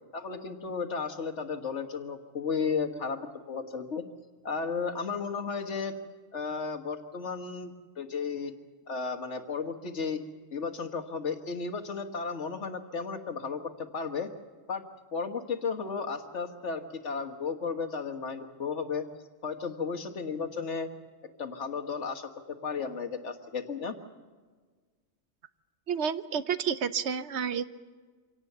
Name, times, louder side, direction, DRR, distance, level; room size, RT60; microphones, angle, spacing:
voice 1, 0.1-3.2 3.5-4.0 4.4-5.9 6.3-8.5 8.9-10.2 10.5-14.3 14.7-14.8 15.1-19.0 19.4-20.9 21.4-22.3 22.6-24.0, left 5 dB, 60° left, 7 dB, 1.8 m, -34 dB
voice 2, 25.9-27.7, right 7 dB, 60° right, 13 dB, 1.0 m, -30 dB
25.5 x 18.0 x 6.8 m, 1.5 s
omnidirectional pair, 1.4 m